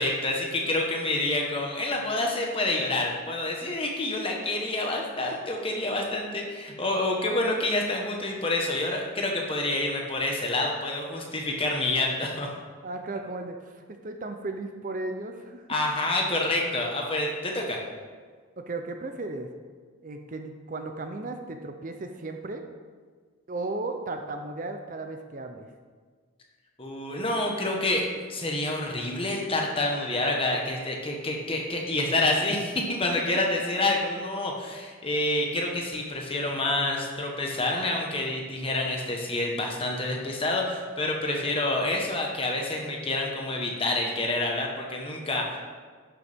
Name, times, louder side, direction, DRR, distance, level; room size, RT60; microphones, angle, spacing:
voice 1, 0.0-12.5 15.7-17.8 26.8-45.6, left 2 dB, 25° left, 0 dB, 1.2 m, -28 dB
voice 2, 12.8-15.7 18.6-19.5 20.0-22.6 23.5-25.7, right 2 dB, 40° right, 5 dB, 0.5 m, -35 dB
11.0 x 6.7 x 3.5 m, 1.6 s
head